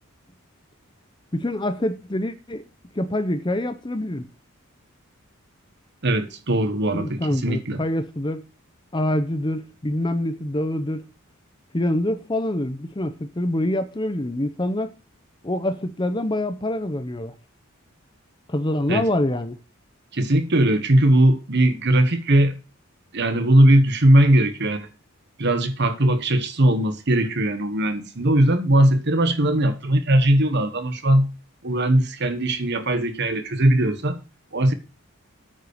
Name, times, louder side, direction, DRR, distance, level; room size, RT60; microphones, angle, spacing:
voice 1, 1.3-2.6 3.0-4.3 6.9-8.4 8.9-11.1 11.7-14.9 15.4-17.3 18.5-19.6, left 1 dB, 20° left, 0.8 m, -25 dB
voice 2, 6.0-7.8 18.9-19.0 20.1-22.5 23.1-24.9 25.4-31.3 31.6-34.2 34.5-34.7, right 1 dB, 55° right, 1.4 m, -19 dB
9.3 x 5.5 x 6.5 m
head